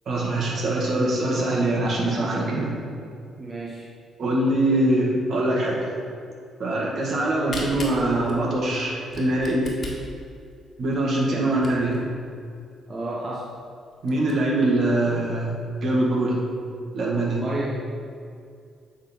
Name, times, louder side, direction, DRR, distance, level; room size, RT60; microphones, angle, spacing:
voice 1, 0.1-2.8 4.2-5.8 6.6-9.7 10.8-12.0 14.0-16.4 16.9-17.4, right 1 dB, 60° right, -3 dB, 1.7 m, -23 dB
voice 2, 3.4-3.9 11.3-11.6 12.9-13.5 17.2-17.8, right 2 dB, 30° right, -4 dB, 0.9 m, -31 dB
Camera, 7.2-12.1 12.6-12.7 12.9-13.0 13.5-13.6 13.9-14.3, left 3 dB, 50° left, 1.5 m, -39 dB
9.2 x 3.9 x 4.4 m, 2.3 s
cardioid pair, 90°, 0 cm